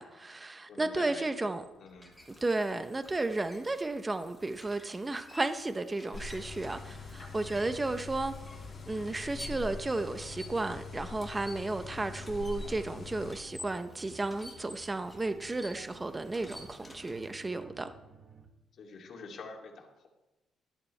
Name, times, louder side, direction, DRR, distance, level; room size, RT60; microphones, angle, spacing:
voice 1, 0.0-1.6 2.4-8.3 8.9-17.9, right 2 dB, 20° right, 0.7 m, -33 dB
voice 2, 0.7-1.3 1.8-2.1 6.6-7.0 18.7-20.1, left 4 dB, 60° left, 2.6 m, -47 dB
sound 1, 1.4-17.6, left 1 dB, ahead, 2.8 m, -53 dB
sound 2, 6.1-13.3, left 3 dB, 45° left, 4.3 m, -43 dB
sound 3, 11.8-18.5, right 3 dB, 40° right, 1.5 m, -54 dB
13.0 x 12.0 x 3.3 m
cardioid pair, 90°, 0 cm